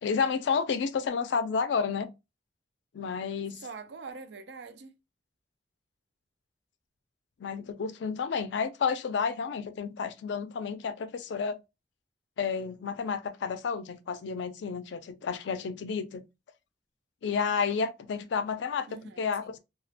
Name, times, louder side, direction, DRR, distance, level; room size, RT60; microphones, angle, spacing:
voice 1, 0.0-2.1 2.9-3.6 7.4-11.6 12.4-16.2 17.2-18.9 19.2-19.6, left 5 dB, 85° left, 0.4 m, -31 dB
voice 2, 3.6-4.9 18.9-19.6, right 4 dB, 75° right, 0.4 m, -44 dB
2.4 x 2.0 x 2.7 m
head